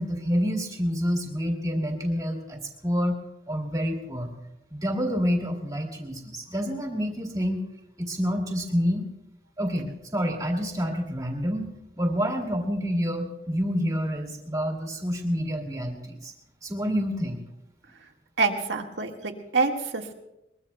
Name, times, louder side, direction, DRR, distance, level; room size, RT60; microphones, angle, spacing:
voice 1, 0.0-3.2 3.5-4.3 4.7-7.6 8.0-9.1 9.6-11.7 12.0-16.3 16.6-17.4, equal, 20° right, 1 dB, 2.3 m, -28 dB
voice 2, 18.4-20.1, right 4 dB, 90° right, 2 dB, 1.7 m, -26 dB
22.5 x 21.5 x 2.2 m, 0.88 s
head